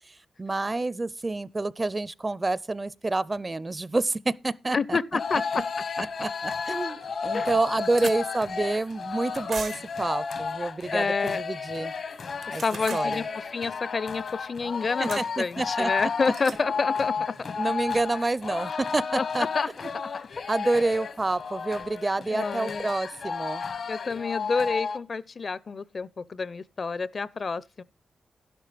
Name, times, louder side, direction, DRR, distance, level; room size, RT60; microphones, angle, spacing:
voice 1, 0.1-5.0 6.0-11.9 12.5-12.6 12.9-13.2 15.0-15.9 17.6-19.5 20.5-23.6, right 2 dB, 25° right, 0.5 m, -28 dB
voice 2, 4.7-5.7 7.3-7.5 10.9-11.4 12.5-17.4 19.1-20.1 22.3-22.9 23.9-27.8, left 4 dB, 50° left, 0.5 m, -29 dB
sound 1, 5.2-25.0, left 5 dB, 65° left, 0.9 m, -33 dB
sound 2, 7.1-7.2 7.4-8.2 9.5-10.0 12.3-13.1 15.1-15.3 16.2-16.6, right 6 dB, 85° right, 1.2 m, -38 dB
11.5 x 11.5 x 3.3 m
cardioid pair, 85°, 0 cm